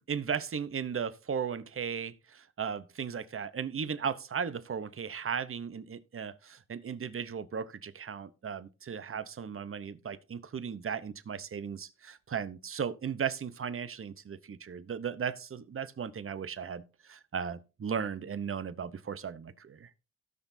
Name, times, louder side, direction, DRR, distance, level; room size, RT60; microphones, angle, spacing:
voice 1, 0.1-19.9, right 7 dB, 45° right, 0.8 m, -36 dB
17.0 x 6.1 x 2.7 m
cardioid pair, 80°, 32 cm